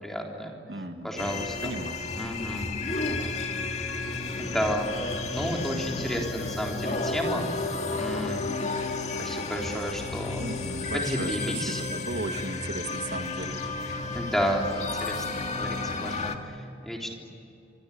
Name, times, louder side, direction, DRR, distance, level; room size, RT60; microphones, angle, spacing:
voice 1, 0.0-0.5 1.0-1.7 2.2-2.7 4.4-7.5 7.9-8.5 9.2-10.4 10.9-11.8 14.1-15.2 15.6-16.5 16.8-17.1, equal, ahead, 0 dB, 3.7 m, -31 dB
voice 2, 0.7-2.0 10.4-13.6, right 2 dB, 70° right, 5 dB, 2.0 m, -36 dB
sound 1, 1.2-16.4, left 3 dB, 40° left, 2.1 m, -32 dB
26.0 x 25.0 x 8.6 m, 2.8 s
head